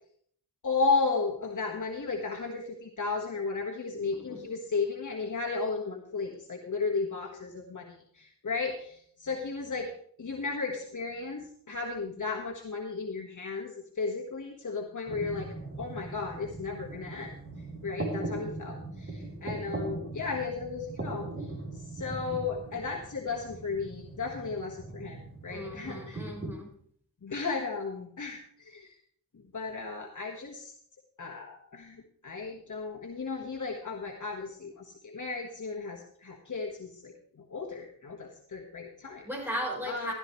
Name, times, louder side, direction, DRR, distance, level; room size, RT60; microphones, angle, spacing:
voice 1, 0.6-9.9 10.2-17.3 17.8-26.3 27.2-28.9 29.5-30.7 31.2-39.3 39.9-40.1, left 4 dB, 55° left, 0 dB, 1.5 m, -34 dB
voice 2, 3.9-4.4 25.5-26.7 39.2-40.1, equal, 5° right, -1 dB, 4.2 m, -37 dB
sound 1, 15.1-26.5, right 2 dB, 35° right, 3.4 m, -40 dB
14.0 x 12.5 x 3.1 m, 0.62 s
wide cardioid pair, 85°, 38 cm